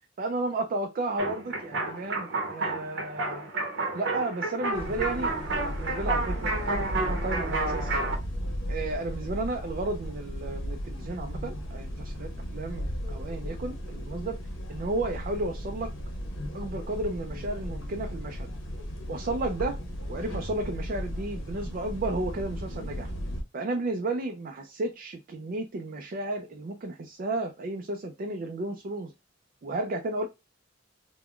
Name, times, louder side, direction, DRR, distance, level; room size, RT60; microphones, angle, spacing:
voice 1, 0.2-3.5 3.9-7.9 8.7-14.4 14.7-15.9 16.5-18.5 19.1-19.8 20.1-23.1 23.5-29.1 29.6-30.3, right 2 dB, 45° right, 4 dB, 0.4 m, -33 dB
sound 1, 1.2-8.2, right 2 dB, 70° right, 0.8 m, -31 dB
sound 2, 4.7-23.4, equal, 85° left, 0.9 m, -35 dB
3.5 x 2.1 x 2.3 m, 0.24 s
head